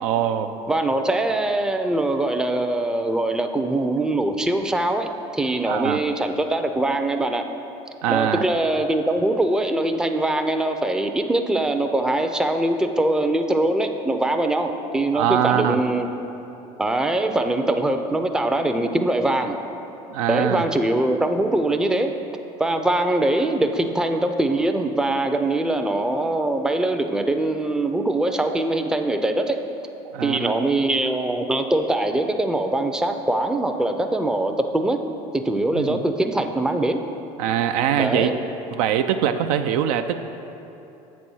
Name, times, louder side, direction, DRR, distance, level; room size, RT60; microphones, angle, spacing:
voice 1, 0.0-0.5 5.7-6.0 8.0-8.4 15.1-15.8 20.1-20.7 30.0-30.6 35.7-36.0 37.4-38.3 38.7-40.2, right 10 dB, 75° right, 8 dB, 0.4 m, -23 dB
voice 2, 0.7-7.4 8.1-16.1 16.8-19.5 20.3-22.2 22.6-29.6 30.2-35.0 35.3-37.0 38.0-38.3, right 1 dB, 5° right, 5 dB, 0.5 m, -22 dB
7.6 x 4.2 x 6.2 m, 2.9 s
hypercardioid pair, 75°, 19 cm